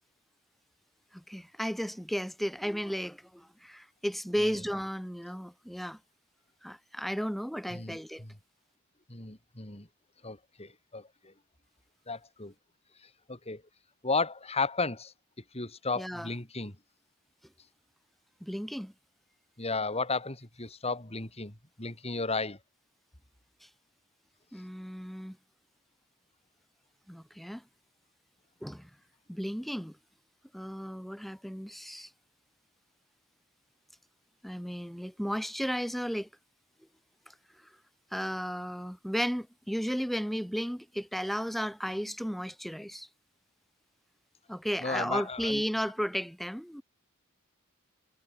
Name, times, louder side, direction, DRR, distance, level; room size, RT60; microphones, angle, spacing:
voice 1, 1.1-6.0 6.6-8.2 16.0-16.3 18.4-18.9 24.5-25.4 27.1-27.6 28.6-28.9 29.3-30.0 30.5-32.1 34.4-36.3 38.1-43.1 44.5-46.8, equal, ahead, 2.7 m, -34 dB
voice 2, 7.7-8.3 9.1-9.9 10.2-11.3 12.1-12.5 13.3-13.6 14.0-15.1 15.5-16.8 19.6-22.6 44.8-45.6, left 3 dB, 30° left, 4.1 m, -34 dB
head